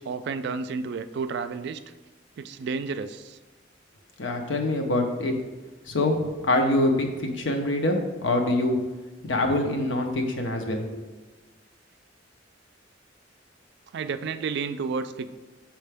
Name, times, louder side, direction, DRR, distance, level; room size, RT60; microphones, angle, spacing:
voice 1, 0.0-1.8 2.4-3.4 13.9-15.3, right 5 dB, 60° right, 11 dB, 0.3 m, -31 dB
voice 2, 4.2-5.3 5.9-8.8 9.2-10.8, left 1 dB, 75° left, 4 dB, 0.8 m, -25 dB
6.5 x 4.4 x 3.4 m, 1.2 s
head